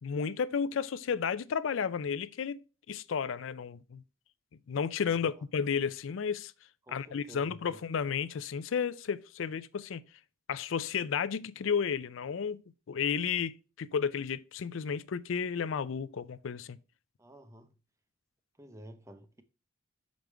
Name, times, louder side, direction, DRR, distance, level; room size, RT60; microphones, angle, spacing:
voice 1, 0.0-2.6 2.9-4.0 4.7-6.5 6.9-10.0 10.5-12.6 12.9-16.8, left 6 dB, 75° left, 0.4 m, -32 dB
voice 2, 6.8-7.8 17.2-17.7 18.6-19.4, right 1 dB, 15° right, 0.7 m, -52 dB
6.2 x 5.1 x 3.3 m
head